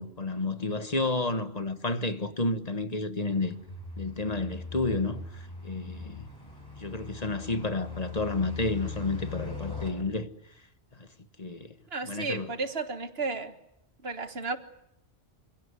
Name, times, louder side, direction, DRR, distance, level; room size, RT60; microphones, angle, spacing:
voice 1, 0.0-3.6 4.0-6.3 6.8-10.3 10.9-11.1 11.4-11.8 12.0-12.5, left 2 dB, 35° left, 1.4 m, -31 dB
sound 1, 3.2-9.9, left 5 dB, 20° left, 7.6 m, -40 dB
voice 2, 11.9-13.5 14.0-14.6, right 4 dB, 55° right, 1.8 m, -33 dB
27.5 x 16.5 x 9.7 m
omnidirectional pair, 1.2 m